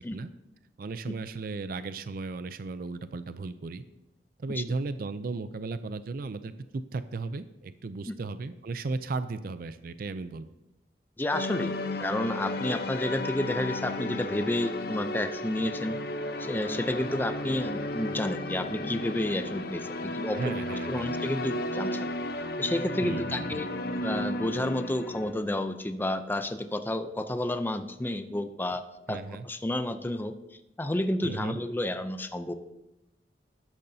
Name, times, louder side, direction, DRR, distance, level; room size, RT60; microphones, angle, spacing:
voice 1, 0.8-3.8 4.4-10.5 20.4-21.1 23.0-23.7 29.1-29.5 31.2-31.6, right 3 dB, 55° right, 12 dB, 0.4 m, -35 dB
voice 2, 11.2-16.0 16.4-20.5 20.9-22.1 22.6-23.7 24.0-28.8 29.1-32.5, left 1 dB, 10° left, 9 dB, 0.4 m, -31 dB
sound 1, 11.3-25.3, left 1 dB, 60° left, 0.7 m, -34 dB
13.0 x 10.5 x 2.7 m, 0.93 s
head